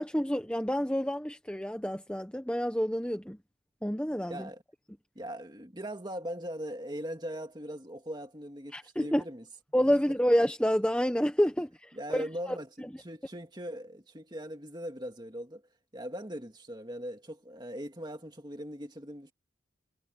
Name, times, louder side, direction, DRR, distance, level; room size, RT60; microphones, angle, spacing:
voice 1, 0.0-3.4 3.8-4.5 8.7-9.2 9.7-12.6, equal, 5° left, 1.1 m, -28 dB
voice 2, 4.3-4.6 5.2-9.5 11.9-15.6 15.9-19.3, equal, 20° right, 2.2 m, -40 dB
head